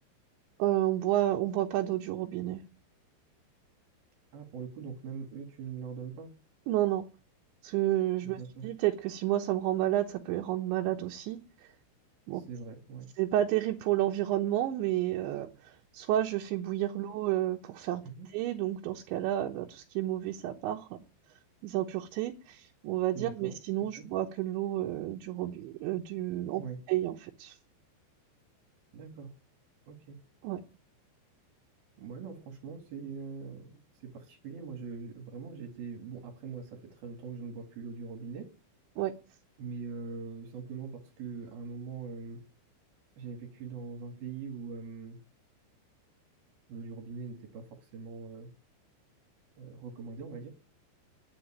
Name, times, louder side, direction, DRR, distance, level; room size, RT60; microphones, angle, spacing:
voice 1, 0.6-2.6 6.7-7.0 7.6-11.4 12.3-12.4 13.2-18.0 18.3-21.0 21.6-26.6 26.9-27.6 30.4-30.6 39.0-39.1, right 13 dB, 75° right, 3.2 m, -30 dB
voice 2, 4.3-6.4 8.2-8.7 12.3-13.1 18.0-18.3 23.1-24.1 26.6-26.8 28.9-29.3 29.9-30.2 32.0-38.5 39.6-42.4 43.2-45.2 46.7-48.5 49.6-50.5, right 5 dB, 60° right, 3.4 m, -42 dB
10.0 x 9.4 x 10.0 m
omnidirectional pair, 5.6 m